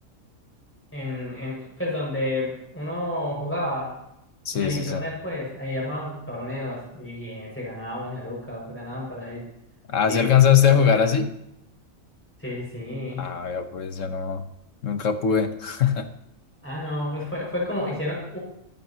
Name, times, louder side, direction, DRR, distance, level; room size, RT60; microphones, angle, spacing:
voice 1, 0.9-3.9 4.5-9.5 10.1-11.1 12.4-13.2 16.6-18.4, left 1 dB, 10° left, -4 dB, 6.1 m, -31 dB
voice 2, 4.4-5.0 9.9-11.3 13.2-14.5 14.8-16.1, left 8 dB, 70° left, 7 dB, 1.5 m, -21 dB
24.0 x 11.5 x 3.0 m, 0.81 s
omnidirectional pair, 1.4 m